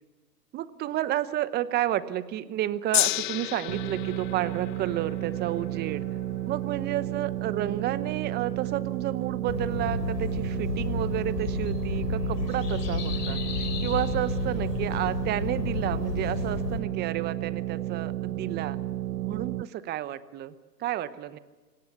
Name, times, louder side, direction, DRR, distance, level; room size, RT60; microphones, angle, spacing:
voice 1, 0.5-6.0 6.5-18.8 19.2-20.5 20.8-21.4, right 13 dB, 20° right, 16 dB, 0.9 m, -31 dB
Gong, 2.9-9.3 10.1-10.2, left 20 dB, 30° left, 0.7 m, -34 dB
sound 1, 3.7-19.6, right 14 dB, 80° right, 0.7 m, -32 dB
sound 2, 9.5-16.8, left 6 dB, 70° left, 3.6 m, -32 dB
26.0 x 18.5 x 8.3 m, 1.3 s
hypercardioid pair, 120°, 49 cm